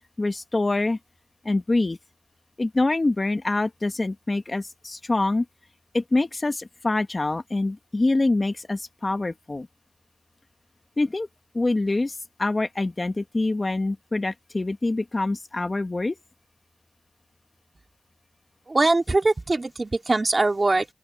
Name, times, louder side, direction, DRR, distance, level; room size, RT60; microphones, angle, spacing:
voice 1, 0.2-1.0 1.5-2.0 2.6-4.6 5.1-5.4 6.1-6.5 6.8-9.6 11.0-11.3 11.6-12.1 12.4-16.1, left 2 dB, 35° left, 2.1 m, -25 dB
voice 2, 18.7-20.9, right 2 dB, 40° right, 3.2 m, -22 dB
open air
cardioid pair, 55°, 0 cm